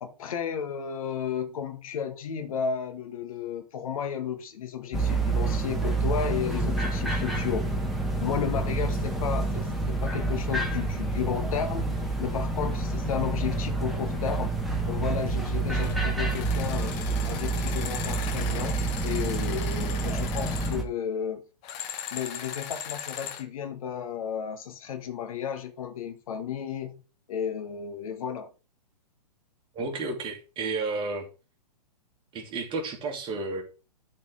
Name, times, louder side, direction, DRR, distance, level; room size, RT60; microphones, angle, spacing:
voice 1, 0.0-7.7 8.2-11.9 12.2-14.5 14.8-17.0 17.3-21.4 22.1-27.0 27.3-28.5, left 8 dB, 55° left, 1.3 m, -33 dB
sound 1, 4.9-20.8, right 3 dB, ahead, 1.4 m, -28 dB
sound 2, 15.7-16.0 16.3-20.8 21.6-23.4, left 9 dB, 30° left, 1.1 m, -38 dB
voice 2, 29.7-31.3 32.3-33.6, right 3 dB, 25° right, 2.2 m, -32 dB
12.0 x 4.3 x 3.7 m
figure-of-eight pair, 115°, 21 cm